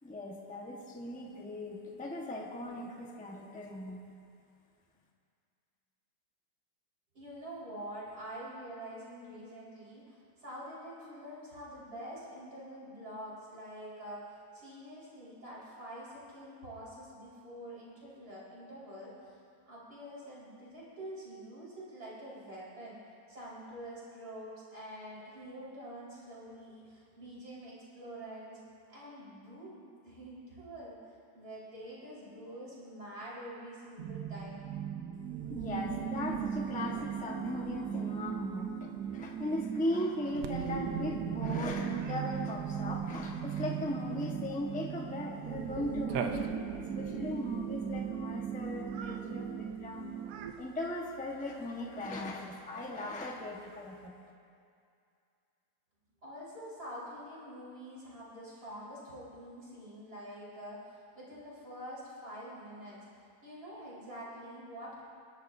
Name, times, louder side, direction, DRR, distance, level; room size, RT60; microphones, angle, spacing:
voice 1, 0.0-4.0 35.5-50.1 50.6-54.1, left 1 dB, 5° left, -1 dB, 0.8 m, -38 dB
voice 2, 7.1-19.4 19.7-23.0 23.3-28.6 28.9-31.0 31.3-34.6 56.2-63.1 63.4-65.0, equal, 45° right, -8 dB, 4.9 m, -46 dB
sound 1, 34.0-50.5, right 8 dB, 60° right, 1.1 m, -37 dB
Cat, 40.4-54.1, right 6 dB, 80° right, 1.5 m, -48 dB
27.0 x 12.0 x 2.7 m, 2.4 s
omnidirectional pair, 2.2 m